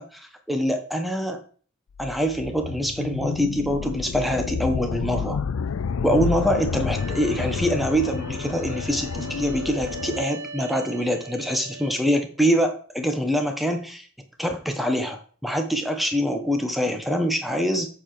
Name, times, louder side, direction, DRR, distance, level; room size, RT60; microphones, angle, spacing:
voice 1, 0.0-1.4 2.0-5.4 6.0-14.1 14.4-17.9, equal, ahead, 5 dB, 1.2 m, -24 dB
sound 1, 2.0-10.2, left 6 dB, 75° left, 0.4 m, -30 dB
sound 2, 7.0-12.0, right 3 dB, 90° right, 1.4 m, -40 dB
8.4 x 4.9 x 6.7 m, 0.43 s
head